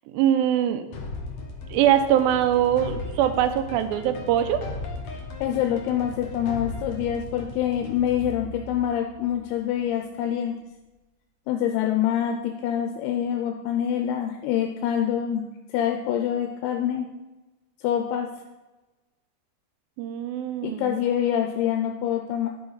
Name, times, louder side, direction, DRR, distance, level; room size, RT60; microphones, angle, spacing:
voice 1, 0.1-0.8 1.7-4.6 20.0-21.0, right 10 dB, 85° right, 7 dB, 2.2 m, -22 dB
sound 1, 0.9-9.8, left 2 dB, 70° left, 1.7 m, -37 dB
voice 2, 5.1-10.6 11.5-17.1 17.8-18.3 20.6-22.5, left 10 dB, 85° left, 3 dB, 2.6 m, -26 dB
12.0 x 4.8 x 3.9 m, 1.1 s
omnidirectional pair, 4.7 m